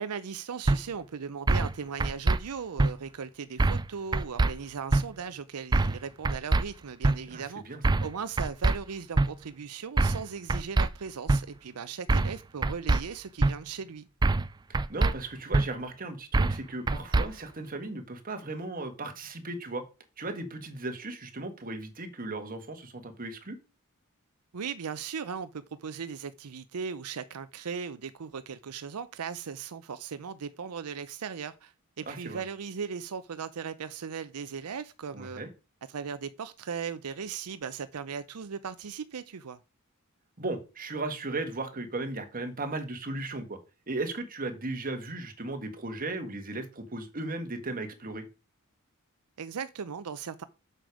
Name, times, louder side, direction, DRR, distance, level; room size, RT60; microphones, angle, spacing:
voice 1, 0.0-7.6 8.0-14.1 24.5-35.4 35.9-39.6 49.4-50.4, right 6 dB, 85° right, 0.6 m, -38 dB
sound 1, 0.7-0.8 1.5-1.7 2.0-2.4 2.8-2.9 3.6-3.9 4.1-4.5 4.9-5.0 5.7-6.0 6.2-6.6 7.0-7.2 7.8-8.1 8.4-8.8 9.2-9.3 10.0-10.2 10.5-10.9 11.3-11.4 12.1-12.4 12.6-13.0 13.4-13.5 14.2-14.5 14.7-15.1 15.5-15.7 16.3-16.6 16.9-17.3, right 2 dB, 20° right, 0.3 m, -23 dB
voice 2, 7.3-7.8 14.9-19.8 20.2-23.6 32.1-32.4 35.1-35.5 40.4-43.6 43.9-48.2, right 2 dB, 40° right, 1.7 m, -36 dB
7.8 x 6.7 x 4.8 m
head